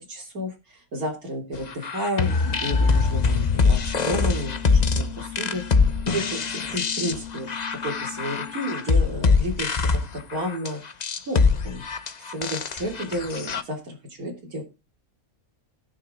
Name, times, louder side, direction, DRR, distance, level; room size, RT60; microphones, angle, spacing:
voice 1, 0.1-2.3 2.6-5.6 6.1-6.4 6.7-7.5 7.8-10.8 11.3-11.9 12.2-14.6, equal, 70° right, 0 dB, 3.7 m, -31 dB
sound 1, 1.7-13.6, left 4 dB, 35° left, 0.7 m, -23 dB
sound 2, 2.3-8.6, left 8 dB, 55° left, 1.4 m, -39 dB
18.5 x 6.5 x 3.8 m, 0.26 s
omnidirectional pair, 1.6 m